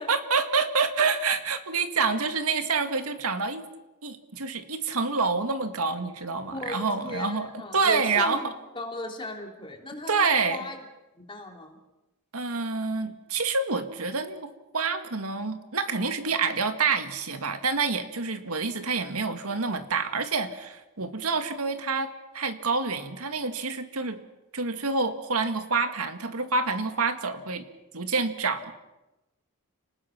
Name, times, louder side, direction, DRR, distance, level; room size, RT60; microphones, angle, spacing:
voice 1, 0.0-3.6 4.0-8.5 10.1-10.6 12.3-24.2 24.5-27.7 27.9-28.7, right 4 dB, 85° right, 8 dB, 2.0 m, -27 dB
voice 2, 6.5-10.8 11.2-11.8, left 1 dB, 25° left, 2 dB, 3.2 m, -37 dB
30.0 x 19.5 x 5.9 m, 1.0 s
head